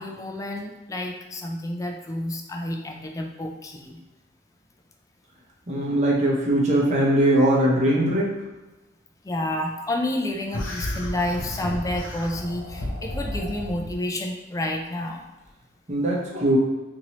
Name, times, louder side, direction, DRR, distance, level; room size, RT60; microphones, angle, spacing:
voice 1, 0.0-4.0 9.2-15.2, left 1 dB, 20° left, 2 dB, 0.3 m, -30 dB
voice 2, 5.7-8.3 15.9-16.6, right 1 dB, 40° right, -4 dB, 0.8 m, -21 dB
sound 1, 10.5-13.9, left 1 dB, 85° left, 0.6 m, -32 dB
3.0 x 2.6 x 2.9 m, 1.1 s
head